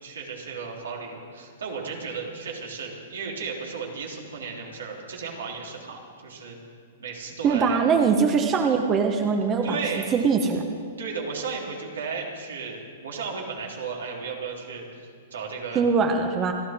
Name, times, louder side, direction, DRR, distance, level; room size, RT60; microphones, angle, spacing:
voice 1, 0.0-6.6 7.0-7.9 9.6-10.1 11.0-15.9, right 5 dB, 85° right, -2 dB, 3.5 m, -34 dB
voice 2, 7.4-9.8 10.1-10.6 15.7-16.5, right 5 dB, 25° right, 4 dB, 1.2 m, -22 dB
28.5 x 12.0 x 3.7 m, 2.2 s
hypercardioid pair, 125°, 0 cm